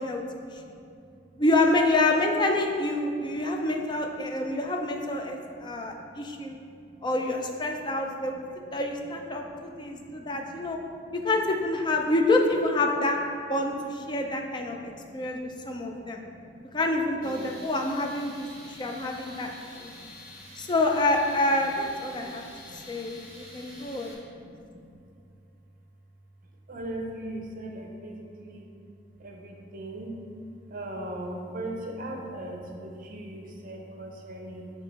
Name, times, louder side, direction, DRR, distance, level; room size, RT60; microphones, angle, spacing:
voice 1, 0.3-1.2 3.1-3.5 4.1-4.6 5.2-6.6 6.9-7.1 7.7-8.8 9.3-11.1 13.5-13.6 14.2-16.8 17.2-18.1 18.4-19.2 19.4-20.6 22.0-23.2 23.5-25.2 26.7-28.7 29.2-30.2 30.7-34.7, right 1 dB, 50° right, 1 dB, 0.7 m, -42 dB
voice 2, 1.4-6.6 7.0-8.4 8.7-10.8 11.1-13.2 13.5-16.2 16.7-19.5 19.8-19.9 20.6-22.4 22.9-24.5, left 2 dB, 25° left, 2 dB, 0.5 m, -27 dB
Tools, 17.2-24.1, left 1 dB, 50° left, 1.5 m, -48 dB
6.5 x 3.1 x 5.2 m, 2.5 s
head